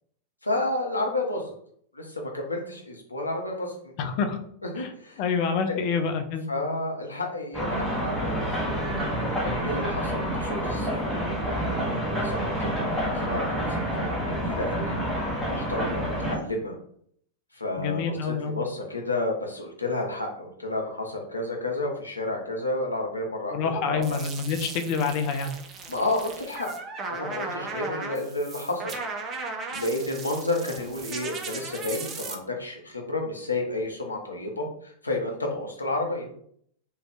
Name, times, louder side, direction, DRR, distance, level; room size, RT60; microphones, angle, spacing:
voice 1, 0.4-1.5 1.9-4.1 4.6-5.2 5.7-5.9 6.5-8.5 9.1-11.1 12.2-16.8 17.5-24.2 25.9-26.7 27.1-29.0 29.7-36.3, left 2 dB, 80° left, 1 dB, 0.6 m, -31 dB
voice 2, 4.0-4.4 4.8-4.9 5.2-6.5 17.8-18.6 23.5-25.5, left 5 dB, 45° left, 7 dB, 0.4 m, -27 dB
sound 1, 7.5-16.4, equal, ahead, 1.1 m, -28 dB
sound 2, 24.0-32.3, right 4 dB, 30° right, 0.5 m, -37 dB
2.5 x 2.3 x 3.4 m, 0.65 s
figure-of-eight pair, 90°, 0 cm